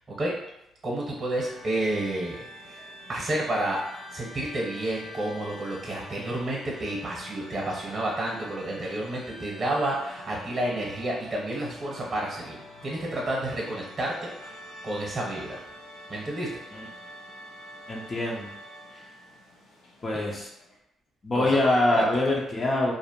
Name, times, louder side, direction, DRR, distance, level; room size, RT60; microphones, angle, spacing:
voice 1, 0.8-2.8 3.1-3.8 4.1-12.6 12.8-14.3 14.8-15.6 16.1-16.5 21.3-21.6 21.9-22.0, right 1 dB, 35° right, -3 dB, 0.8 m, -30 dB
sound 1, 1.3-20.8, left 1 dB, 90° left, 0.6 m, -46 dB
voice 2, 17.9-18.5 20.0-20.5 21.2-22.9, left 2 dB, 35° left, -2 dB, 0.5 m, -24 dB
2.5 x 2.0 x 2.8 m, 0.86 s
cardioid pair, 90°, 0 cm